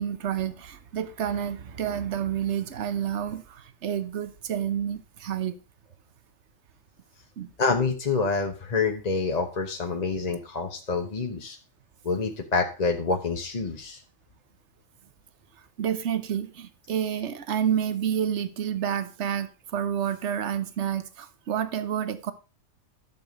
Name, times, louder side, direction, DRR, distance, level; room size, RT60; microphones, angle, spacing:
voice 1, 0.0-5.5 7.4-7.5 15.8-22.3, right 9 dB, 60° right, 1.2 m, -29 dB
voice 2, 7.6-11.6 12.0-14.0, left 4 dB, 35° left, 1.1 m, -27 dB
12.0 x 7.0 x 5.3 m
omnidirectional pair, 1.4 m